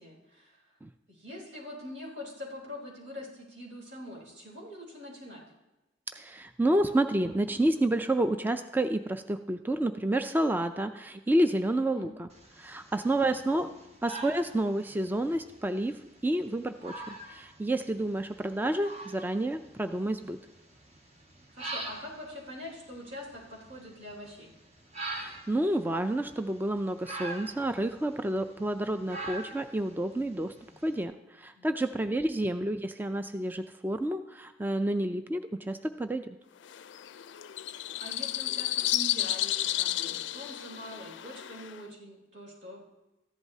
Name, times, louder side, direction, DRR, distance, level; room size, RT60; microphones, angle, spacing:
voice 1, 0.0-0.6 1.1-5.4 11.9-12.1 13.1-13.4 13.6-13.8 21.5-24.5 31.6-32.1 38.0-42.8, left 1 dB, 80° right, -3 dB, 3.5 m, -44 dB
voice 2, 6.1-12.3 12.6-13.7 14.0-20.4 25.1-30.5 30.8-36.3, right 1 dB, 10° right, 8 dB, 0.3 m, -29 dB
sound 1, 12.3-31.0, right 2 dB, 40° right, 1.3 m, -45 dB
sound 2, 36.6-41.8, left 13 dB, 85° left, 0.4 m, -32 dB
14.0 x 11.0 x 2.8 m, 1.0 s
head